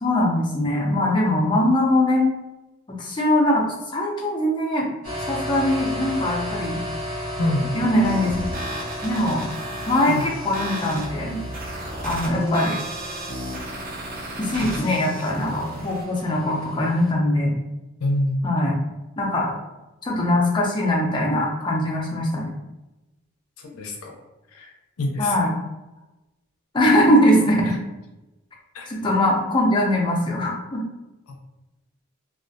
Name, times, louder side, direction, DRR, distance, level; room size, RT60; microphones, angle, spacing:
voice 1, 0.0-2.3 3.0-3.7 3.9-4.9 5.3-6.8 7.7-8.3 9.0-9.4 9.8-10.2 10.4-11.4 12.0-12.8 14.4-17.5 18.4-18.7 19.2-19.5 20.0-22.5 25.2-25.5 26.7-27.7 28.9-30.8, left 1 dB, 20° left, -2 dB, 0.4 m, -21 dB
sound 1, 5.0-17.1, equal, 75° right, 0.9 m, -34 dB
voice 2, 7.4-7.7 10.1-10.3 12.3-12.7 14.6-15.1 18.0-18.5 23.6-24.2 24.5-25.5 27.6-27.8 28.7-28.9 31.3-31.4, left 1 dB, 80° left, 2 dB, 0.5 m, -27 dB
sound 2, 8.0-16.0, right 1 dB, 40° right, 0.5 m, -34 dB
2.3 x 2.1 x 2.5 m, 1.0 s
head